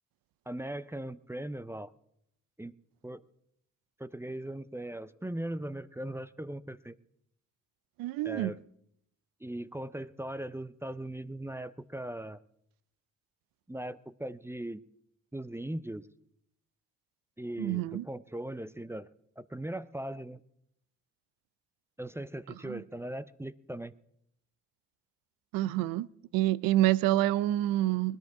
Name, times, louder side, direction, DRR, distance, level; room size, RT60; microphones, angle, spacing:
voice 1, 0.5-1.9 2.6-2.7 3.0-3.2 4.0-7.0 8.2-8.6 9.4-12.4 13.7-14.8 15.3-16.1 17.4-19.1 19.4-20.4 22.0-23.9, right 1 dB, 10° right, 0.5 m, -39 dB
voice 2, 8.0-8.5 17.6-18.0 22.6-22.8 25.5-26.1 26.3-28.2, right 14 dB, 90° right, 0.5 m, -27 dB
20.0 x 10.5 x 4.7 m
cardioid pair, 70°, 33 cm